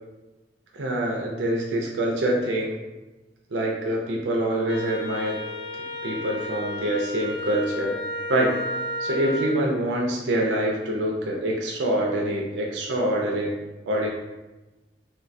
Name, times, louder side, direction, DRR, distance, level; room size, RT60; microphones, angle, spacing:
voice 1, 0.7-2.8 3.5-5.4 6.0-8.0 8.3-8.6 9.0-13.5 13.9-14.1, right 1 dB, 80° right, -1 dB, 0.4 m, -25 dB
Wind instrument woodwind instrument, 4.7-9.6, left 1 dB, 75° left, 0.4 m, -33 dB
3.2 x 2.1 x 2.5 m, 1.1 s
head